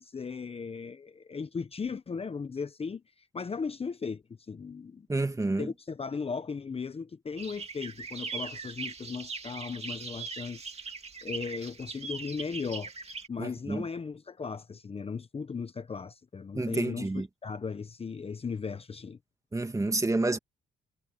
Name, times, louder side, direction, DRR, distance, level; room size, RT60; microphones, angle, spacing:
voice 1, 0.0-5.1 5.6-10.6 11.2-12.9 13.3-17.1 17.4-19.2, left 5 dB, 30° left, 0.9 m, -37 dB
voice 2, 5.1-5.7 13.4-13.9 16.5-17.3 19.5-20.4, right 2 dB, 15° right, 2.0 m, -29 dB
sound 1, 7.4-13.3, right 4 dB, 30° right, 2.4 m, -40 dB
cardioid pair, 90°, 20 cm